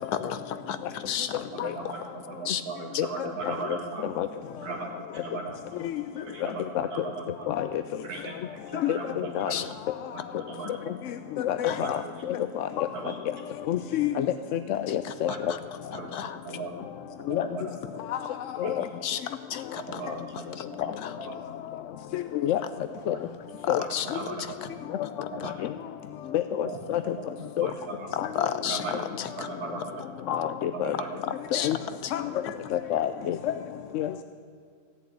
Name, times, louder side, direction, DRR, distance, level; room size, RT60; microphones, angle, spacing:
voice 1, 0.1-1.5 2.5-2.6 9.5-9.6 11.6-11.8 14.9-15.1 16.1-16.4 19.0-19.2 19.5-20.0 20.6-20.7 21.0-21.1 23.6-24.2 25.0-25.5 28.1-28.8 29.2-29.3 31.5-31.7 32.0-32.1, left 9 dB, 85° left, 12 dB, 1.4 m, -32 dB
voice 2, 1.5-4.0 4.6-7.5 8.0-9.8 10.1-11.1 11.6-12.1 12.9-13.2 15.3-15.6 15.9-16.8 17.2-18.0 18.6-18.7 19.9-21.4 23.0-23.3 23.8-24.8 25.3-25.7 26.6-27.1 27.5-28.1 28.6-29.1 29.4-30.0 30.7-31.2 31.5-31.7, right 4 dB, 85° right, 0 dB, 1.7 m, -39 dB
voice 3, 8.7-9.5 11.4-12.0 12.3-12.9 13.7-14.3 14.5-15.3 17.3-17.5 18.1-18.2 18.6-18.9 22.1-22.6 23.1-23.2 23.7-23.8 26.3-27.0 27.6-27.7 28.2-28.3 30.3-30.9 31.5-31.8 32.1-32.2 32.7-33.5 33.9-34.1, left 11 dB, 65° left, 10 dB, 0.8 m, -28 dB
15.5 x 7.2 x 9.8 m, 2.2 s
omnidirectional pair, 1.6 m